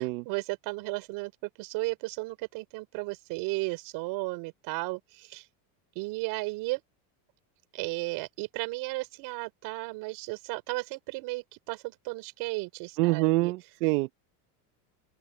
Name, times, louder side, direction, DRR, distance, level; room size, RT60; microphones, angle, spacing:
voice 1, 0.0-5.5 6.0-6.8 7.7-13.5, right 24 dB, 55° right, 3.5 m, -34 dB
voice 2, 13.0-14.1, right 21 dB, 75° right, 1.1 m, -25 dB
open air
supercardioid pair, 145°, 46 cm